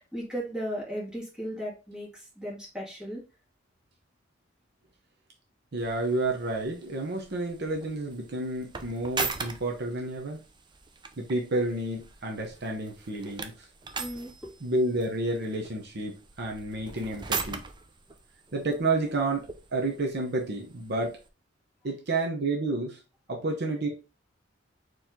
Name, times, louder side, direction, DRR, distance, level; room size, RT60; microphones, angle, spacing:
voice 1, 0.0-3.2 14.0-14.5, equal, 5° right, -6 dB, 2.4 m, -36 dB
voice 2, 5.7-10.4 11.2-13.5 14.6-17.6 18.5-19.5 19.7-21.2 21.8-23.0 23.3-23.9, right 2 dB, 60° right, 1 dB, 0.9 m, -30 dB
sound 1, 5.8-21.3, right 4 dB, 25° right, 0.5 m, -41 dB
4.4 x 3.2 x 3.6 m, 0.30 s
head